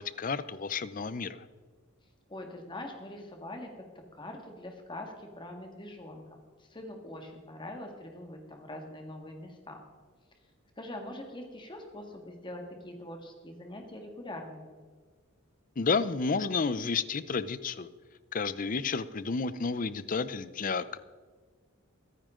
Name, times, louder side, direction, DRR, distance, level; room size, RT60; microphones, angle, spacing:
voice 1, 0.0-1.4 15.8-17.9 18.3-21.0, left 4 dB, 40° left, 15 dB, 0.5 m, -31 dB
voice 2, 2.3-3.7 4.1-9.8 10.8-14.8, left 1 dB, 20° left, 3 dB, 1.8 m, -43 dB
23.5 x 10.0 x 3.8 m, 1.5 s
head